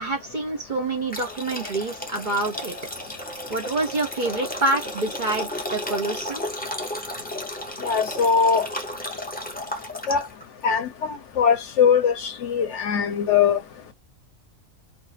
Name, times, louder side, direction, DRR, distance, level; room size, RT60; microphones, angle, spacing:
voice 1, 0.0-2.8 3.5-6.5, right 2 dB, 45° right, 0.7 m, -27 dB
sound 1, 1.1-10.4, left 1 dB, 10° left, 0.4 m, -33 dB
voice 2, 7.8-8.7 10.1-10.2 10.6-13.6, left 6 dB, 65° left, 0.9 m, -21 dB
2.4 x 2.4 x 4.0 m
omnidirectional pair, 1.4 m